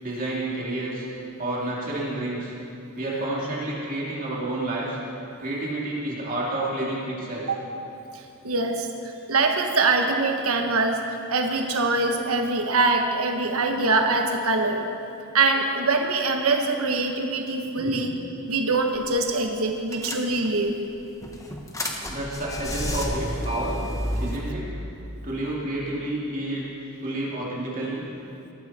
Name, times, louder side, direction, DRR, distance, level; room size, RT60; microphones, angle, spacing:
voice 1, 0.0-1.1 1.4-2.5 3.0-5.0 5.4-7.4 17.7-18.0 22.1-23.8 24.2-24.7 25.2-26.7 27.0-28.1, right 1 dB, 40° right, -5 dB, 2.8 m, -29 dB
voice 2, 8.1-11.0 11.3-14.8 15.3-18.1 18.5-20.8 24.2-24.4, right 3 dB, 75° right, 3 dB, 1.4 m, -23 dB
sound 1, 18.9-19.2 19.4-19.5 19.9-20.7 21.2-24.4, left 1 dB, 15° left, 1.3 m, -30 dB
19.0 x 13.5 x 4.3 m, 2.8 s
head